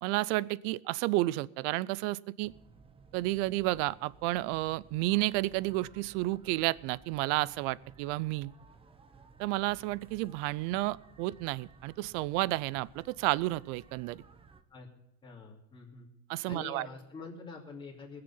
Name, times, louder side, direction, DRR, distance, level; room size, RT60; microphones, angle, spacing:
voice 1, 0.0-2.5 3.1-8.5 9.4-14.2 16.3-16.9, right 19 dB, 65° right, 22 dB, 0.5 m, -31 dB
sound 1, 2.4-14.6, right 5 dB, 15° right, 0.6 m, -57 dB
voice 2, 15.2-16.1 16.5-18.2, left 4 dB, 10° left, -3 dB, 2.6 m, -46 dB
20.5 x 6.8 x 5.6 m, 0.91 s
cardioid pair, 150°, 40 cm